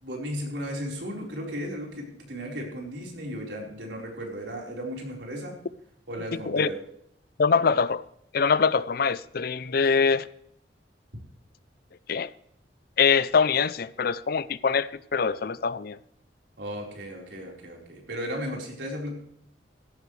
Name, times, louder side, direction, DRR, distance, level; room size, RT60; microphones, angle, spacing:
voice 1, 0.0-5.6 6.1-6.8 16.6-19.1, equal, 75° right, 4.4 m, -35 dB
voice 2, 7.4-8.0 8.3-10.3 12.1-12.3 13.0-16.0, left 5 dB, 55° left, 0.5 m, -23 dB
16.0 x 14.0 x 3.3 m
head